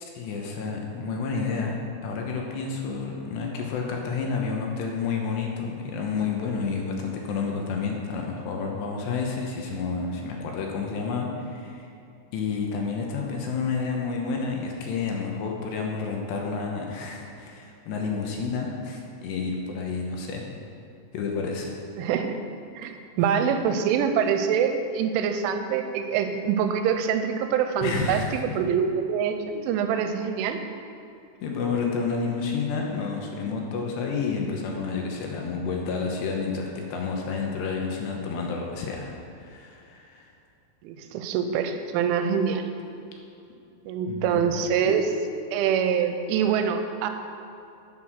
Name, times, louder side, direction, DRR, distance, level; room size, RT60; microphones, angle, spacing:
voice 1, 0.0-1.7 2.0-11.9 12.3-20.4 21.1-21.7 27.8-28.4 31.4-40.3 44.1-44.6, left 5 dB, 75° left, 0 dB, 2.9 m, -30 dB
voice 2, 22.0-22.4 22.8-30.6 40.8-42.6 43.9-45.1 45.5-47.1, right 7 dB, 85° right, 7 dB, 3.2 m, -25 dB
9.4 x 8.0 x 6.2 m, 2.7 s
omnidirectional pair, 5.5 m